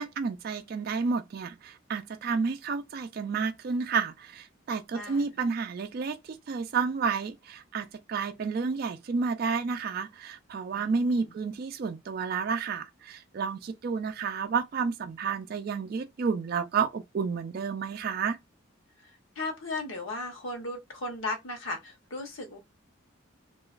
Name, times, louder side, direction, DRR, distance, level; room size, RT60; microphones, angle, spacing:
voice 1, 0.0-18.4, right 5 dB, 45° right, 0.3 m, -31 dB
voice 2, 4.9-5.4 10.7-11.4 19.0-22.6, left 2 dB, 75° left, 0.9 m, -37 dB
2.8 x 2.3 x 2.4 m
head